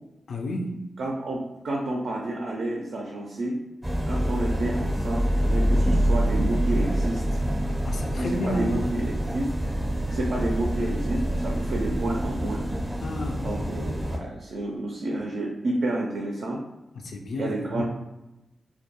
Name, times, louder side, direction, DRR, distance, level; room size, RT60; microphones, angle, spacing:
voice 1, 0.3-0.9 7.8-8.8 13.0-13.6 17.0-17.8, left 1 dB, 70° left, 2 dB, 0.3 m, -31 dB
voice 2, 1.0-3.6 4.1-7.4 8.1-9.5 10.1-12.6 13.4-16.6 17.4-17.8, right 1 dB, 75° right, -1 dB, 0.4 m, -30 dB
sound 1, 3.8-14.2, equal, 15° right, 0.5 m, -26 dB
2.2 x 2.2 x 2.8 m, 0.97 s
cardioid pair, 55°, 0 cm